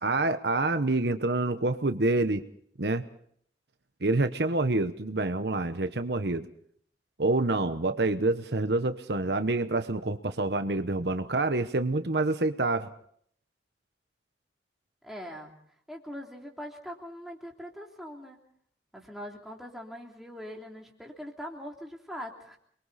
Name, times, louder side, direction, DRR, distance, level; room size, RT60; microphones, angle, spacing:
voice 1, 0.0-2.4 2.8-3.0 4.0-6.5 7.2-12.9, right 2 dB, 70° right, 9 dB, 1.1 m, -27 dB
voice 2, 15.0-15.5 15.9-18.4 18.9-22.6, equal, ahead, -1 dB, 3.2 m, -42 dB
29.5 x 22.5 x 4.2 m, 0.64 s
head